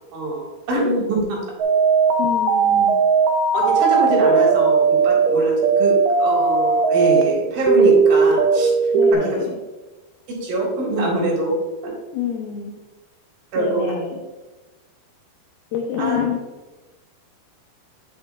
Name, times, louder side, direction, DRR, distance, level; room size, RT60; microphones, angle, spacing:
voice 1, 0.1-1.4 3.5-8.7 9.1-9.4 10.3-11.6 11.8-11.9 13.5-13.8 16.0-16.2, right 1 dB, 65° right, -2 dB, 3.4 m, -23 dB
sound 1, 1.6-7.2 7.7-9.1, right 5 dB, 80° right, 1.9 m, -17 dB
voice 2, 2.2-3.0 8.9-9.6 12.1-12.8 13.6-14.2 15.7-16.4, left 7 dB, 80° left, 2 dB, 2.4 m, -27 dB
9.3 x 7.6 x 2.4 m, 1.1 s
omnidirectional pair, 4.8 m